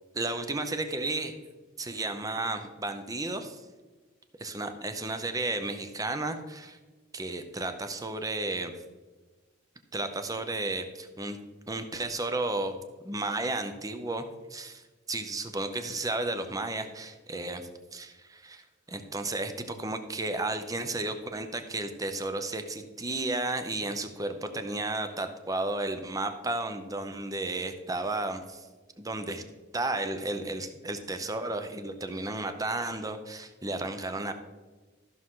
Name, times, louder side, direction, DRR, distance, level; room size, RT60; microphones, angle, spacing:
voice 1, 0.1-1.3 1.8-3.7 4.4-6.8 7.1-8.8 9.9-11.4 11.7-12.8 13.0-28.7 29.0-29.4 29.7-34.3, right 2 dB, 15° right, 8 dB, 0.7 m, -33 dB
14.0 x 6.3 x 3.8 m, 1.3 s
head